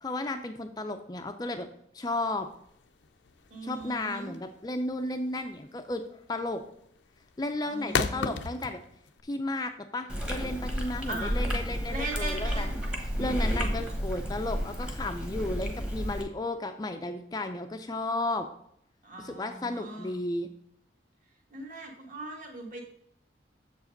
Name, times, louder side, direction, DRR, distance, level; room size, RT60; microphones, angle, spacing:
voice 1, 0.0-1.7 1.9-2.5 3.6-6.6 7.4-8.8 9.2-18.5 19.2-20.5, left 2 dB, 20° left, 7 dB, 0.4 m, -34 dB
sound 1, 2.4-9.2, left 5 dB, 75° left, 0.5 m, -35 dB
voice 2, 3.5-4.4 7.6-8.4 11.1-11.5 11.9-12.8 13.1-13.2 19.0-20.1 21.5-22.8, right 2 dB, 45° right, 0 dB, 1.7 m, -39 dB
Chewing mastication, 10.1-16.2, equal, 5° right, 1.0 m, -31 dB
7.3 x 4.9 x 5.1 m, 0.71 s
head